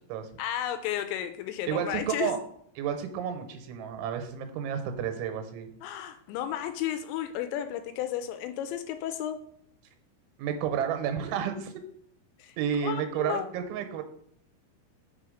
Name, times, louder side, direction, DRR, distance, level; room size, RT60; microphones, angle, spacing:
voice 1, 0.4-2.4 5.8-9.4 12.4-12.6 12.8-13.5, left 11 dB, 85° left, 9 dB, 2.7 m, -33 dB
voice 2, 1.7-2.4 2.8-5.7 10.4-11.7 12.6-14.0, right 8 dB, 85° right, 7 dB, 3.2 m, -31 dB
5.7 x 5.6 x 5.0 m, 0.68 s
omnidirectional pair, 5.3 m